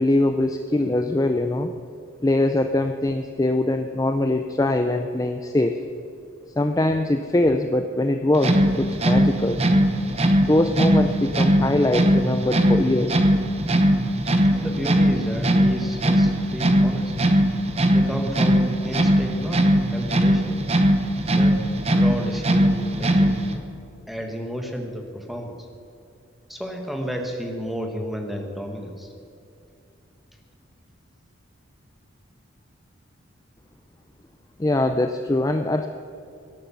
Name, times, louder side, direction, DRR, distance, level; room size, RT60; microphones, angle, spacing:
voice 1, 0.0-1.7 2.2-5.8 6.6-9.6 10.4-13.3 34.6-35.9, left 1 dB, 15° left, 7 dB, 0.4 m, -22 dB
sound 1, 8.3-23.6, equal, 30° right, 0.9 m, -20 dB
voice 2, 14.5-17.1 17.9-19.6 19.9-20.6 21.3-21.6 21.9-23.4 24.1-25.7 26.5-29.1, equal, ahead, 2 dB, 1.4 m, -32 dB
17.0 x 9.2 x 7.0 m, 2.5 s
head